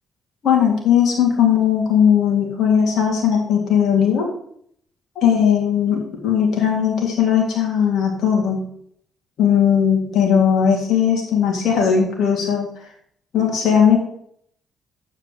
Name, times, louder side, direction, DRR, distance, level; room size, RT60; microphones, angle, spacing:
voice 1, 0.4-4.3 5.2-8.7 9.4-12.7 13.3-14.0, left 8 dB, 70° left, -1 dB, 2.5 m, -18 dB
8.8 x 7.6 x 3.2 m, 0.65 s
supercardioid pair, 65°, 0 cm